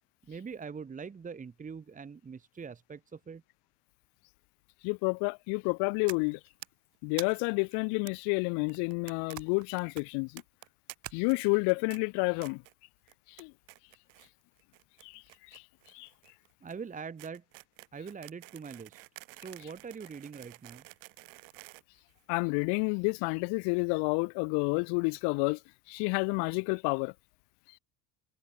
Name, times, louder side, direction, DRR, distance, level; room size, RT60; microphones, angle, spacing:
voice 1, 0.2-3.4 16.6-17.4 17.9-19.0 19.3-20.8, right 5 dB, 20° right, 1.8 m, -43 dB
voice 2, 4.8-6.4 7.0-10.4 11.1-12.6 13.4-13.5 15.0-15.2 15.5-15.6 15.9-16.1 22.3-25.6 25.9-27.1, left 37 dB, 80° left, 1.2 m, -29 dB
sound 1, 6.1-6.7 7.2-7.8 9.3-9.7 9.9-10.3 11.0-11.7, right 12 dB, 45° right, 4.7 m, -45 dB
sound 2, 6.1-6.3 6.6-6.7 6.9-7.0 7.3-7.4 8.1-8.2 8.7-9.4 9.6-9.8 10.4-10.9 11.3-11.6 11.9-12.0 12.4-12.7 13.1-13.4 13.7-14.3 14.6-22.6, right 40 dB or more, 80° right, 7.4 m, -51 dB
cardioid pair, 135°, 40 cm